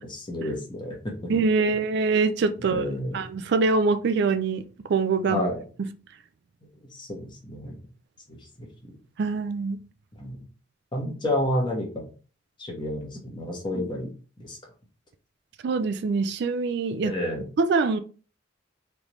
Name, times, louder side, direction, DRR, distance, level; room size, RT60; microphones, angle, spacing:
voice 1, 0.1-1.3 1.7-1.8 2.6-3.2 5.3-5.6 6.9-7.8 8.3-8.9 10.1-10.4 10.9-12.1 12.6-14.6 17.0-17.5, left 1 dB, 25° left, 1.1 m, -31 dB
voice 2, 1.3-2.8 3.1-4.6 4.9-5.5 9.2-9.8 15.6-17.1 17.6-18.0, right 4 dB, 60° right, 0.4 m, -24 dB
3.9 x 3.4 x 3.0 m
head